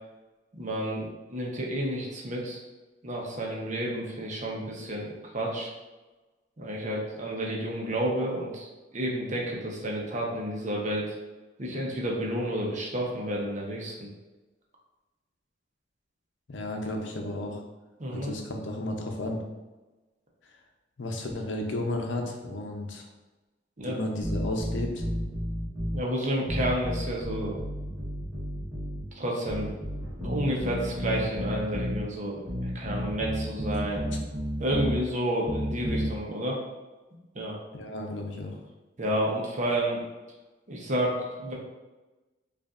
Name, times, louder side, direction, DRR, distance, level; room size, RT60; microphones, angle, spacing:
voice 1, 0.6-2.6 3.0-5.7 6.6-11.1 11.6-14.1 18.0-18.3 23.8-24.0 25.9-27.6 29.1-29.8 30.2-34.1 34.6-36.6 37.3-37.6 39.0-40.0 40.7-41.5, right 1 dB, 40° right, -2 dB, 0.8 m, -30 dB
voice 2, 16.5-17.6 18.1-19.4 21.0-23.0 23.8-25.0 37.7-38.6, left 1 dB, 85° left, 2 dB, 0.6 m, -33 dB
sound 1, 24.2-26.0 26.5-29.1 29.5-32.0 32.5-35.0 35.5-36.1, equal, 15° right, 1.1 m, -32 dB
5.1 x 2.5 x 2.4 m, 1.2 s
head